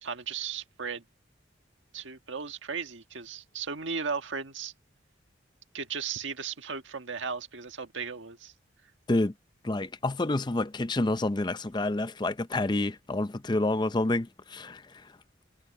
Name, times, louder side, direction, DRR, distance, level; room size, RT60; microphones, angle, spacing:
voice 1, 0.0-1.0 1.9-4.7 5.7-8.5, right 6 dB, 85° right, 1.6 m, -36 dB
voice 2, 9.6-14.8, left 2 dB, 25° left, 0.5 m, -28 dB
head